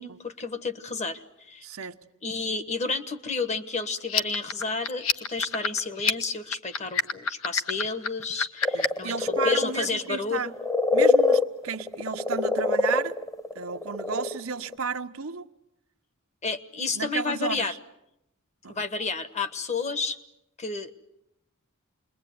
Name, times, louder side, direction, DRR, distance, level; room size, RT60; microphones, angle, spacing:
voice 1, 0.0-1.7 2.2-10.5 16.4-17.7 18.7-20.2 20.6-20.9, left 4 dB, 35° left, 1.3 m, -31 dB
voice 2, 1.6-2.0 8.7-10.5 10.9-13.2 13.5-15.5 16.9-17.8 18.6-18.8, right 5 dB, 90° right, 1.1 m, -33 dB
sound 1, 4.0-9.1, left 6 dB, 85° left, 1.4 m, -28 dB
sound 2, 8.6-14.4 14.7-14.8, left 3 dB, 15° left, 1.1 m, -24 dB
28.5 x 22.0 x 9.5 m
head